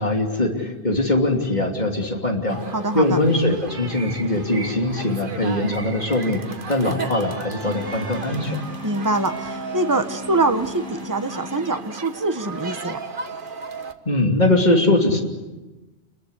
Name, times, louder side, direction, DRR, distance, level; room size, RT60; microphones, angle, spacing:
voice 1, 0.0-2.6 2.9-8.6 14.0-15.2, left 1 dB, 40° left, 2 dB, 3.2 m, -21 dB
sound 1, 2.5-13.9, right 4 dB, 50° right, 1.5 m, -35 dB
voice 2, 2.7-3.2 8.8-13.0, right 2 dB, 15° right, 7 dB, 1.3 m, -24 dB
sound 2, 7.6-12.3, left 1 dB, 60° left, 4.7 m, -37 dB
28.5 x 21.5 x 8.3 m, 1.1 s
omnidirectional pair, 1.2 m